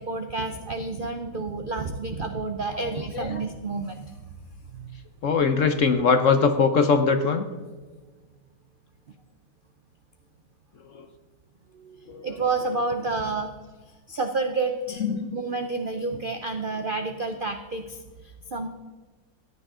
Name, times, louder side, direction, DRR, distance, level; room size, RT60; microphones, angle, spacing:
voice 1, 0.0-4.1 4.7-4.9 11.7-13.5 14.1-15.0 15.3-18.7, right 3 dB, 60° right, 6 dB, 0.5 m, -30 dB
voice 2, 2.9-3.4 5.2-7.4 10.9-11.1 12.1-12.2 15.0-15.3, left 5 dB, 55° left, 8 dB, 0.9 m, -22 dB
15.0 x 9.9 x 3.7 m, 1.3 s
omnidirectional pair, 1.9 m